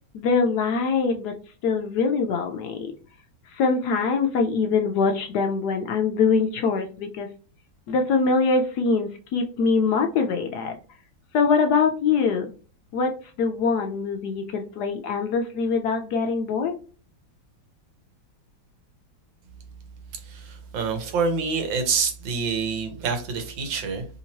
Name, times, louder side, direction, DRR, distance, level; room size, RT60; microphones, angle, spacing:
voice 1, 0.1-1.4 1.6-2.9 3.5-7.3 7.9-10.8 11.3-12.5 12.9-16.7, left 4 dB, 75° left, 4 dB, 1.0 m, -23 dB
voice 2, 20.1-24.1, right 5 dB, 80° right, 6 dB, 1.6 m, -27 dB
3.5 x 2.9 x 2.8 m, 0.37 s
omnidirectional pair, 2.0 m